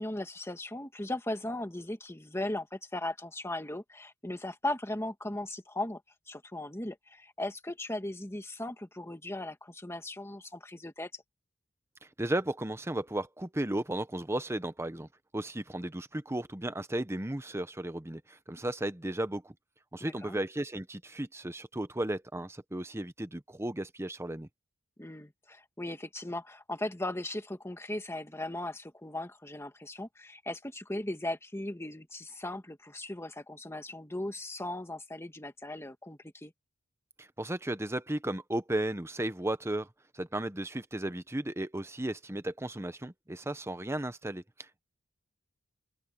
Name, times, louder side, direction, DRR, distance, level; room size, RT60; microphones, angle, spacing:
voice 1, 0.0-6.0 6.3-11.2 20.0-20.4 25.0-36.5, left 1 dB, 15° left, 1.9 m, -38 dB
voice 2, 12.0-15.1 15.3-19.5 19.9-24.5 37.2-39.9 40.1-44.7, right 1 dB, 15° right, 1.0 m, -35 dB
open air
head